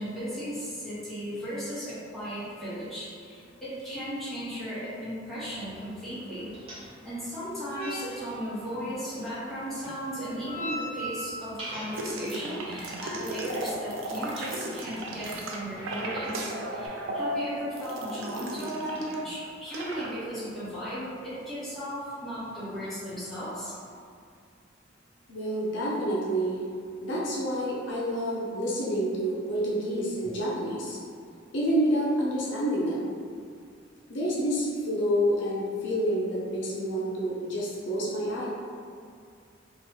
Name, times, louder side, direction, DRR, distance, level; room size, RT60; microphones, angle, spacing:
voice 1, 0.0-23.7, equal, ahead, -13 dB, 1.0 m, -36 dB
sound 1, 5.4-16.9, right 1 dB, 30° right, 0.8 m, -43 dB
sound 2, 11.9-19.2 19.5-20.1, right 1 dB, 90° right, 0.4 m, -35 dB
voice 2, 25.3-26.6 27.0-31.0 31.5-33.1 34.1-38.5, equal, 70° left, -6 dB, 0.6 m, -28 dB
3.1 x 2.3 x 2.9 m, 2.2 s
head